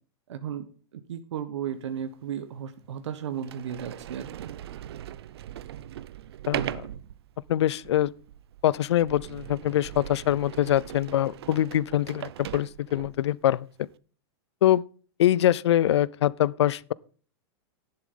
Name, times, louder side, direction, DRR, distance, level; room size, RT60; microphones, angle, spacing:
voice 1, 0.3-0.6 0.9-4.5, right 9 dB, 90° right, 1.4 m, -34 dB
Sliding door, 2.0-2.1 2.8-2.9 3.4-13.3, right 12 dB, 65° right, 0.6 m, -39 dB
voice 2, 6.5-6.9 7.5-8.1 8.6-13.9 14.6-14.9 15.2-16.9, left 12 dB, 75° left, 0.6 m, -24 dB
11.0 x 10.5 x 3.8 m
supercardioid pair, 180°, 14 cm